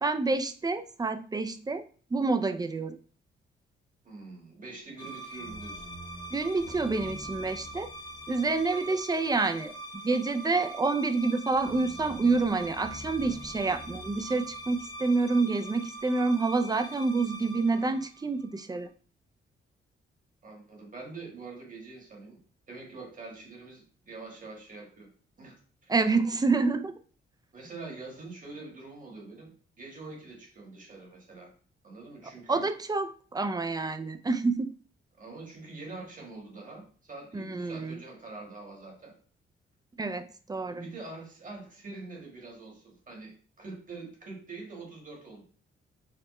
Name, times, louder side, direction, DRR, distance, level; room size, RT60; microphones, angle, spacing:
voice 1, 0.0-3.0 6.3-7.9 8.3-9.7 10.0-18.9 25.9-27.0 32.5-34.7 37.3-38.0 40.0-40.8, right 3 dB, 20° right, 9 dB, 0.4 m, -28 dB
voice 2, 4.0-5.9 20.4-22.4 22.7-25.1 25.4-25.9 27.5-29.5 29.8-31.5 31.8-32.6 35.2-39.1 40.7-45.4, right 3 dB, 40° right, 0 dB, 1.5 m, -45 dB
sound 1, 5.0-18.6, right 1 dB, 20° left, 0.8 m, -43 dB
5.0 x 2.1 x 3.1 m, 0.43 s
cardioid pair, 65°, 21 cm